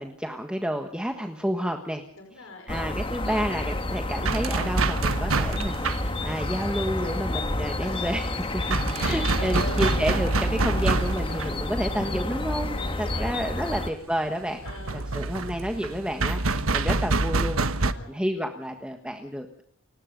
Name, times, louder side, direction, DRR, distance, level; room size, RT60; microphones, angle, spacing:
voice 1, 0.0-2.0 2.7-14.6 14.9-17.6 18.1-19.6, equal, 5° right, 4 dB, 1.5 m, -30 dB
voice 2, 2.1-2.8 7.8-8.1 8.7-10.1 11.1-11.7 12.8-13.3 13.6-13.9 14.6-15.4 17.8-18.2, left 2 dB, 75° left, 3 dB, 5.2 m, -43 dB
sound 1, 2.7-13.9, left 2 dB, 25° left, 1.5 m, -30 dB
sound 2, 3.2-17.9, right 3 dB, 75° right, 1.3 m, -28 dB
29.5 x 16.5 x 5.3 m, 0.65 s
head